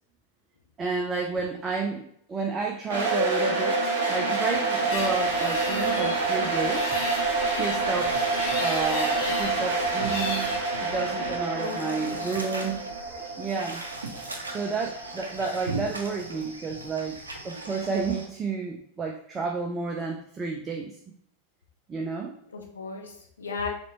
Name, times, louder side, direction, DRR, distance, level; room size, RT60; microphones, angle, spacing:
voice 1, 0.8-7.0 7.5-10.5 10.8-12.8 13.1-13.9 14.5-21.0 21.9-22.4, right 4 dB, 20° right, 2 dB, 0.5 m, -31 dB
sound 1, 2.9-15.8, right 3 dB, 60° right, 1.2 m, -27 dB
sound 2, 4.9-10.6, left 2 dB, 45° left, 1.3 m, -36 dB
sound 3, 8.1-18.3, right 2 dB, 75° right, 0.6 m, -39 dB
voice 2, 11.2-12.3 22.5-23.7, left 4 dB, 70° left, -1 dB, 0.9 m, -37 dB
4.3 x 3.0 x 2.9 m, 0.65 s
figure-of-eight pair, 90°, 0 cm